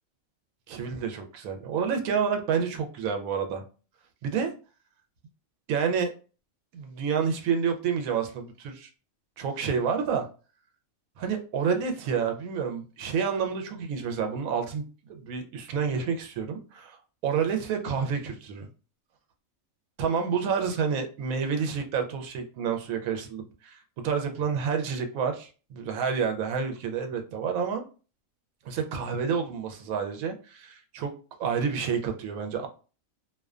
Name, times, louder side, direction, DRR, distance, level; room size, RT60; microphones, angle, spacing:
voice 1, 0.7-3.6 4.2-4.5 5.7-6.1 6.7-8.9 9.4-10.3 11.2-14.8 15.1-17.0 17.2-18.7 20.0-27.8 28.7-31.1 31.4-32.7, right 6 dB, 80° right, 5 dB, 1.0 m, -29 dB
2.5 x 2.2 x 2.3 m, 0.35 s
omnidirectional pair, 1.4 m